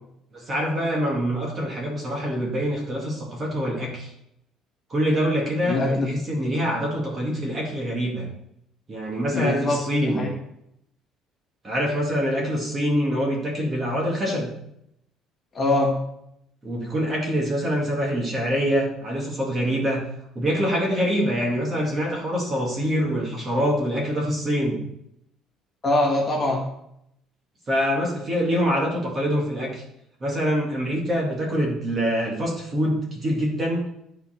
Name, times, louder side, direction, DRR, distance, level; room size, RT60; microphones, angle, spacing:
voice 1, 0.3-4.1 4.9-8.3 8.9-10.2 11.6-14.5 16.6-20.0 20.4-24.8 27.7-29.8 30.2-33.8, equal, 25° right, -2 dB, 2.3 m, -25 dB
voice 2, 5.7-6.1 9.3-9.8 10.2-10.3 15.5-15.9 25.8-26.6, left 2 dB, 25° left, -2 dB, 1.7 m, -22 dB
12.0 x 4.6 x 4.4 m, 0.77 s
cardioid pair, 165°, 0 cm